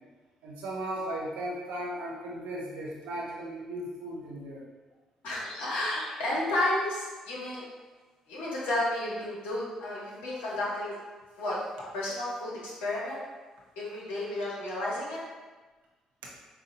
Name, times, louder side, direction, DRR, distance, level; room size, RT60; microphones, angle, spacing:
voice 1, 0.4-4.6, right 1 dB, 70° right, -3 dB, 0.7 m, -36 dB
voice 2, 5.2-7.6 8.3-10.9 11.4-11.6 11.9-13.2 13.8-15.2, left 1 dB, 70° left, -6 dB, 1.1 m, -32 dB
sound 1, 5.2-6.4 7.8-8.1 9.6-10.1 10.7-10.9 11.6-11.7 12.4-12.5 12.7-13.0 13.3-14.5, left 1 dB, 45° left, 1.4 m, -49 dB
4.3 x 2.5 x 2.6 m, 1.3 s
figure-of-eight pair, 40°, 3 cm